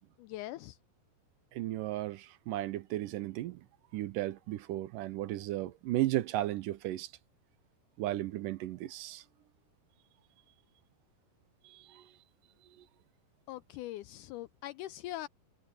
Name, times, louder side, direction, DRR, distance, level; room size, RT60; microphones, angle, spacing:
voice 1, 0.2-0.8 13.5-15.3, left 15 dB, 85° left, 1.8 m, -42 dB
voice 2, 1.5-3.6 3.9-7.1 8.0-9.2 11.7-12.0, right 15 dB, 75° right, 2.3 m, -35 dB
omnidirectional pair, 4.1 m